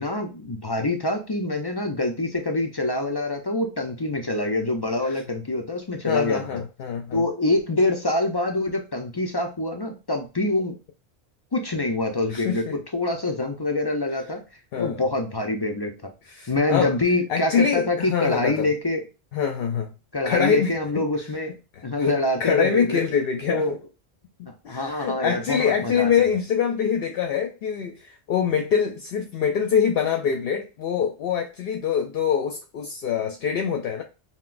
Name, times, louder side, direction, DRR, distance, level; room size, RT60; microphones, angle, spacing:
voice 1, 0.0-6.6 7.1-10.7 11.5-12.6 12.9-14.4 14.8-15.9 16.5-19.0 20.1-21.5 21.8-23.0 23.5-23.7 24.7-26.3, left 2 dB, 35° left, 0.4 m, -25 dB
voice 2, 6.1-7.2 12.3-12.8 14.7-15.0 16.3-16.9 17.3-18.7 19.3-19.9 20.2-21.0 22.0-23.8 24.4-34.0, left 7 dB, 65° left, 0.7 m, -25 dB
5.8 x 2.1 x 2.4 m
omnidirectional pair, 1.1 m